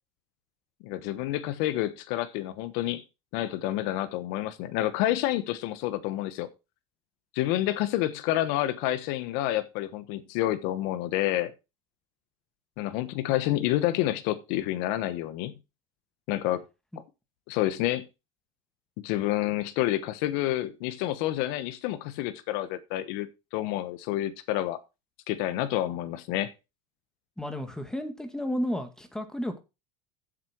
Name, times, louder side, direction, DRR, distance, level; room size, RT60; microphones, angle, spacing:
voice 1, 0.8-3.0 3.3-6.5 7.3-11.5 12.8-15.5 16.3-16.6 17.5-18.1 19.0-24.8 25.3-26.5, left 14 dB, 70° left, 1.1 m, -29 dB
voice 2, 27.4-29.6, equal, 5° left, 2.1 m, -32 dB
10.5 x 7.8 x 4.6 m
supercardioid pair, 125°, 17 cm